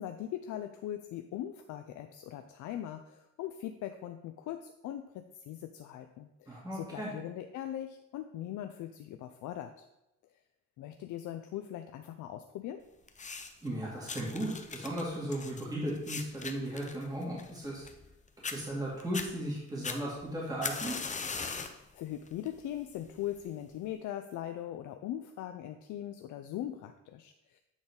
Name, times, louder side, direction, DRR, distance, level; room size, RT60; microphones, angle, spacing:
voice 1, 0.0-9.8 10.8-12.8 21.5-27.6, left 11 dB, 80° left, 7 dB, 0.5 m, -40 dB
voice 2, 6.5-7.1 13.6-17.8 18.5-21.0, right 1 dB, 10° right, -6 dB, 2.2 m, -36 dB
sound 1, 13.1-13.7 14.1-18.1 18.4-18.6 19.0-19.3 19.8-21.8 22.3-22.6 23.4-23.5, left 4 dB, 25° left, 0.6 m, -39 dB
8.9 x 4.0 x 3.7 m, 0.90 s
cardioid pair, 90°, 30 cm